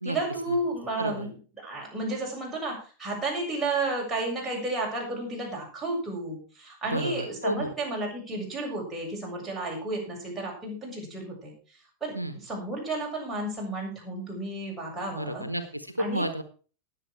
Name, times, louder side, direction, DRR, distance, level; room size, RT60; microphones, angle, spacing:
voice 1, 0.0-1.3 1.6-12.1 12.4-15.4 16.0-16.3, right 2 dB, 10° right, -2 dB, 7.2 m, -32 dB
voice 2, 1.0-1.3 6.9-7.7 12.1-12.4 15.1-16.4, equal, 85° right, 11 dB, 1.1 m, -31 dB
19.0 x 7.7 x 4.5 m, 0.38 s
figure-of-eight pair, 90°, 0 cm